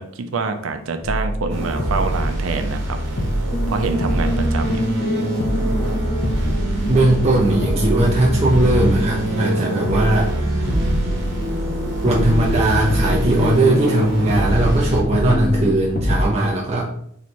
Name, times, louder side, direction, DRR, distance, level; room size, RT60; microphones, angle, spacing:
voice 1, 0.0-3.0 3.7-4.9, right 3 dB, 85° right, 7 dB, 0.5 m, -26 dB
sound 1, 1.0-2.9 3.2-5.1 5.4-7.3 7.6-9.5 9.8-11.7 12.1-14.0 14.3-16.3, equal, 45° left, 0.6 m, -25 dB
sound 2, 1.5-15.0, right 1 dB, 55° right, 1.2 m, -25 dB
sound 3, 3.5-15.7, left 1 dB, 10° left, 0.8 m, -28 dB
voice 2, 6.9-10.7 12.0-16.8, right 1 dB, 30° right, -3 dB, 0.5 m, -19 dB
3.2 x 3.0 x 4.2 m, 0.67 s
head